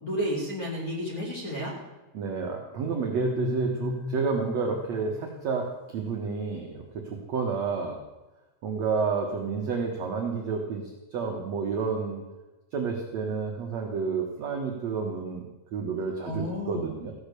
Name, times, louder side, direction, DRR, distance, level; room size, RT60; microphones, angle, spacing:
voice 1, 0.0-1.7 16.2-16.8, equal, 25° left, -3 dB, 2.8 m, -31 dB
voice 2, 2.1-8.0 8.6-12.2 12.7-15.4 15.7-17.1, right 5 dB, 65° right, 1 dB, 1.7 m, -30 dB
sound 1, 3.0-5.9, left 5 dB, 80° left, 3.3 m, -36 dB
15.5 x 8.5 x 6.7 m, 1.1 s
omnidirectional pair, 5.0 m